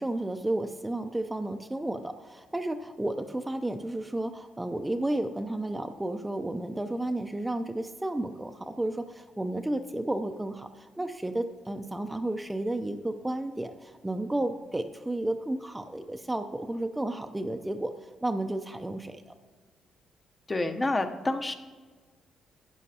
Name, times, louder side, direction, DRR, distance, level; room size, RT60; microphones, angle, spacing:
voice 1, 0.0-19.3, right 1 dB, 10° right, 6 dB, 0.5 m, -32 dB
voice 2, 20.5-21.5, left 2 dB, 25° left, 6 dB, 0.8 m, -28 dB
12.5 x 9.1 x 2.8 m, 1.5 s
cardioid pair, 90°, 0 cm